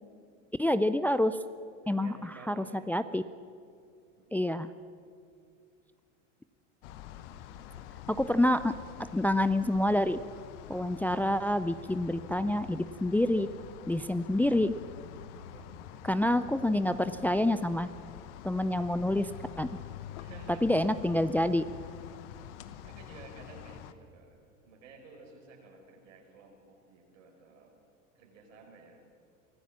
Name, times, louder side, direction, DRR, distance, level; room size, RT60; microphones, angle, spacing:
voice 1, 0.6-1.4 1.9-3.2 4.3-4.7 8.1-8.7 9.1-10.2 10.7-13.5 13.9-14.8 16.0-17.9 18.4-19.3 19.6-19.7 20.6-21.6, left 1 dB, 5° left, 12 dB, 0.4 m, -27 dB
voice 2, 1.8-2.9 4.1-4.3 6.8-7.8 15.5-15.7 20.2-20.7 21.8-21.9 22.8-27.7 28.1-29.0, right 4 dB, 80° right, 1 dB, 5.0 m, -54 dB
sound 1, 6.8-23.9, left 10 dB, 70° left, 1.2 m, -46 dB
24.0 x 14.5 x 7.3 m, 2.3 s
hypercardioid pair, 90°, 37 cm